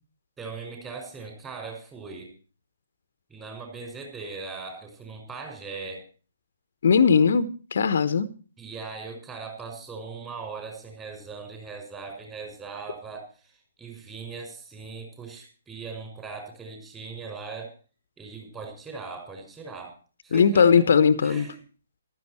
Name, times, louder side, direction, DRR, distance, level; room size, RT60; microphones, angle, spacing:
voice 1, 0.4-2.3 3.3-6.0 8.6-17.7 18.2-19.9 20.2-20.9 21.2-21.6, right 4 dB, 15° right, 4 dB, 5.6 m, -39 dB
voice 2, 6.8-8.3 20.3-21.5, left 6 dB, 55° left, 14 dB, 1.1 m, -19 dB
15.0 x 12.5 x 4.4 m, 0.38 s
figure-of-eight pair, 135°, 0 cm